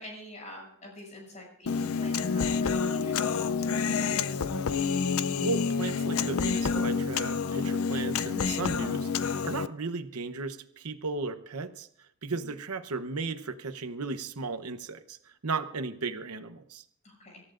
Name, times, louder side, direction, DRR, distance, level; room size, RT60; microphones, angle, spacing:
voice 1, 0.0-4.3 12.3-12.5 17.0-17.4, left 1 dB, 35° left, -1 dB, 6.9 m, -47 dB
Human voice, 1.7-9.7, left 5 dB, 70° left, 0.5 m, -28 dB
voice 2, 5.4-11.9 12.2-16.8, right 4 dB, 90° right, 10 dB, 0.9 m, -35 dB
26.0 x 14.0 x 2.5 m, 0.71 s
head